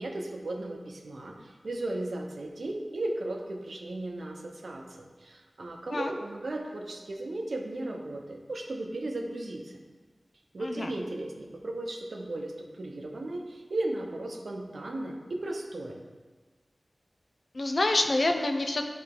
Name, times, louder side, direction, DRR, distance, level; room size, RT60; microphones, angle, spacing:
voice 1, 0.0-9.8 10.5-16.0, right 2 dB, 80° right, 1 dB, 0.7 m, -36 dB
voice 2, 10.6-10.9 17.5-18.9, left 2 dB, 65° left, 4 dB, 0.5 m, -27 dB
8.6 x 3.4 x 3.7 m, 1.4 s
wide cardioid pair, 45°, 0 cm